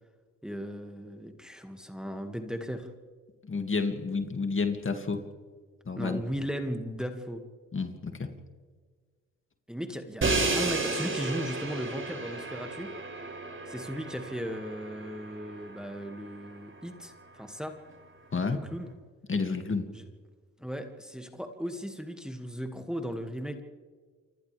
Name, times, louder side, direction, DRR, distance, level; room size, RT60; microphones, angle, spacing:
voice 1, 0.4-2.9 6.0-7.4 9.7-12.9 13.7-17.8 18.5-18.9 19.9-20.0 20.6-23.6, equal, ahead, 5 dB, 2.3 m, -37 dB
voice 2, 3.4-5.2 5.9-6.2 7.7-8.3 18.3-18.6 19.3-19.9, left 4 dB, 30° left, 5 dB, 2.6 m, -30 dB
Crash cymbal, 10.2-16.2, right 3 dB, 30° right, 6.9 m, -32 dB
29.0 x 25.0 x 3.6 m, 1.5 s
hypercardioid pair, 55°, 39 cm